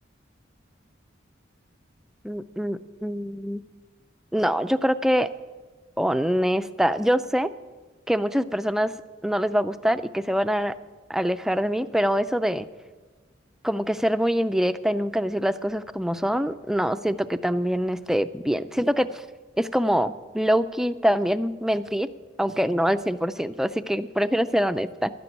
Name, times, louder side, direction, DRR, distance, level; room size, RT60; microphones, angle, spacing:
voice 1, 2.2-3.6 4.3-5.3 6.0-7.5 8.1-8.9 9.2-10.7 11.1-12.7 13.6-19.2 19.6-22.1 22.4-25.1, equal, ahead, 12 dB, 0.4 m, -24 dB
12.0 x 11.5 x 9.1 m, 1.3 s
head